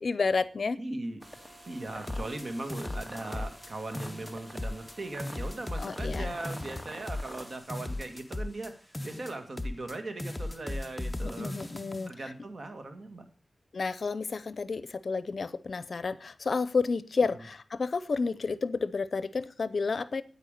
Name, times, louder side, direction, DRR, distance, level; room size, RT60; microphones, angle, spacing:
voice 1, 0.0-0.8 5.8-6.3 11.4-12.1 13.7-20.2, left 4 dB, 65° left, 16 dB, 0.7 m, -30 dB
voice 2, 0.8-1.2 1.7-11.6 12.1-13.3 17.2-17.4, right 2 dB, 55° right, 6 dB, 2.1 m, -39 dB
sound 1, 1.2-7.6, equal, 15° right, 2.2 m, -47 dB
sound 2, 2.1-3.7 3.9-4.9 5.2-8.7 8.9-9.9 10.2-12.1, left 1 dB, 20° left, 0.7 m, -37 dB
9.4 x 9.0 x 6.7 m, 0.40 s
wide cardioid pair, 95°, 0 cm